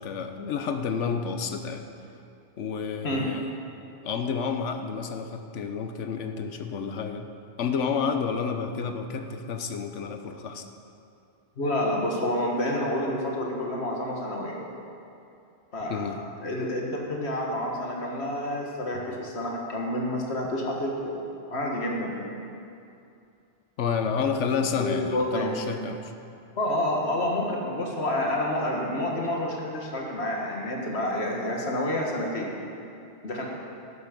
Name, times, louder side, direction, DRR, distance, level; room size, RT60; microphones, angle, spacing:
voice 1, 0.0-1.8 2.6-3.5 4.0-7.3 7.6-10.7 15.9-16.2 18.9-19.0 23.8-26.1, left 6 dB, 75° left, 7 dB, 1.1 m, -30 dB
voice 2, 11.6-14.6 15.7-21.2 21.5-22.3 24.8-25.5 26.6-32.5 33.2-33.4, left 1 dB, 60° left, -1 dB, 1.9 m, -29 dB
12.0 x 10.5 x 5.2 m, 2.6 s
omnidirectional pair, 1.2 m